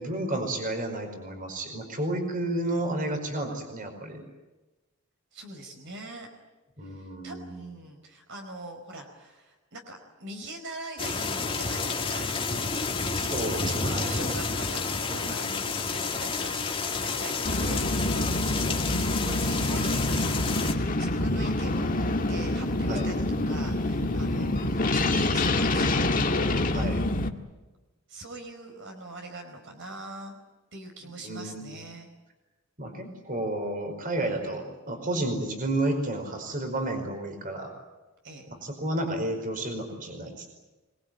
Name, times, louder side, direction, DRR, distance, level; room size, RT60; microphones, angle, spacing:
voice 1, 0.0-4.2 6.8-7.5 13.1-14.2 15.1-16.0 22.9-23.1 23.9-24.5 26.7-27.0 31.2-31.8 32.8-37.7 38.5-40.5, right 1 dB, 40° right, 5 dB, 5.0 m, -32 dB
voice 2, 5.3-6.3 6.8-13.2 13.6-15.4 15.9-26.5 28.1-30.4 30.7-32.1 38.2-38.5, right 2 dB, 55° right, 3 dB, 4.8 m, -43 dB
sound 1, 11.0-20.7, left 4 dB, 25° left, 2.3 m, -30 dB
sound 2, 17.4-27.3, left 2 dB, 40° left, 1.6 m, -26 dB
26.0 x 21.0 x 9.3 m, 1.2 s
head